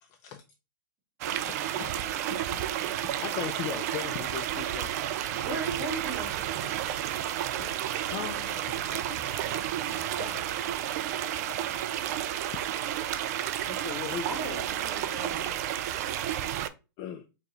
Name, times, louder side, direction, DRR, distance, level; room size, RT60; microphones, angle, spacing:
voice 1, 0.0-0.4 1.3-4.9 5.3-5.4 7.6-7.7 8.1-8.4 13.6-14.6 17.0-17.2, left 10 dB, 30° left, 0.4 m, -39 dB
sound 1, 1.2-16.7, right 11 dB, 45° right, 0.4 m, -31 dB
voice 2, 5.4-6.4 10.2-10.4 14.2-15.6, right 2 dB, 20° right, 2.5 m, -37 dB
voice 3, 8.2-10.8 11.1-12.1, left 6 dB, 90° left, 1.0 m, -49 dB
4.7 x 2.5 x 3.0 m
hypercardioid pair, 145°, 12 cm